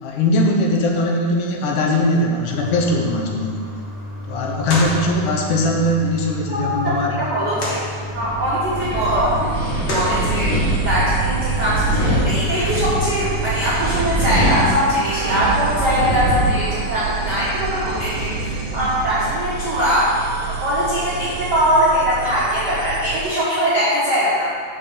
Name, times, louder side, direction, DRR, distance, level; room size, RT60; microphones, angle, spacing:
voice 1, 0.0-3.6 4.3-7.2, left 1 dB, 75° left, 0 dB, 2.2 m, -20 dB
sound 1, 2.5-14.5, left 1 dB, 60° left, 1.1 m, -30 dB
voice 2, 6.8-7.8 8.1-9.5 9.9-10.5 10.8-20.1 20.4-24.4, equal, 55° right, -10 dB, 1.1 m, -21 dB
Wind, 8.0-19.5, equal, 30° left, 1.6 m, -24 dB
sound 2, 9.0-23.3, right 8 dB, 85° right, 2.3 m, -29 dB
5.7 x 5.6 x 6.6 m, 2.1 s
omnidirectional pair, 3.9 m